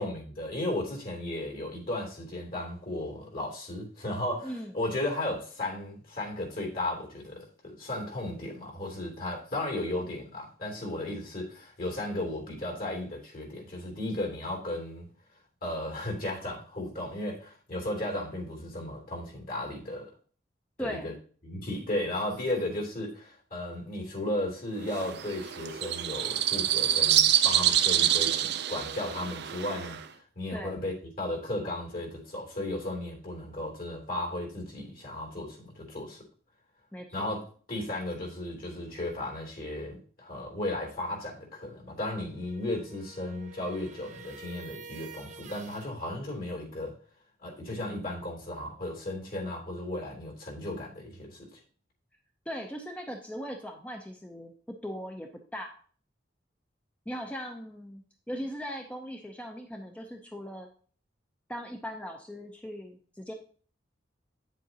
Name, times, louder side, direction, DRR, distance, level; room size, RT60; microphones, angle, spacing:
voice 1, 0.0-7.5 7.8-15.1 15.6-20.1 20.8-21.1 21.4-36.2 37.1-47.0 47.4-51.6, left 1 dB, 55° left, 0 dB, 3.1 m, -35 dB
voice 2, 20.8-21.1 30.5-30.8 36.9-37.4 52.5-55.8 57.1-60.7 61.5-63.3, equal, 5° left, 2 dB, 0.7 m, -39 dB
sound 1, 24.9-30.0, right 11 dB, 65° right, 0.5 m, -26 dB
sound 2, 42.3-45.9, right 4 dB, 45° right, 1.0 m, -48 dB
9.1 x 7.4 x 2.9 m, 0.43 s
head